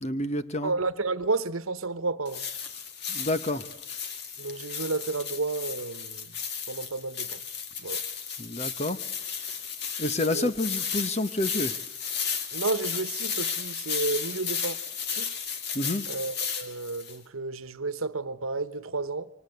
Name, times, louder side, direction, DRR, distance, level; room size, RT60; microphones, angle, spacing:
voice 1, 0.0-0.7 3.1-3.7 8.4-9.0 10.0-11.8 15.7-16.1, left 1 dB, 30° left, 1.1 m, -29 dB
voice 2, 0.6-2.4 4.4-6.3 6.7-7.4 7.8-8.0 10.3-10.5 12.5-14.8 15.1-15.3 16.1-19.3, right 3 dB, 90° right, 1.2 m, -31 dB
sound 1, 2.3-17.2, left 7 dB, 50° left, 2.3 m, -34 dB
28.0 x 24.5 x 8.0 m
head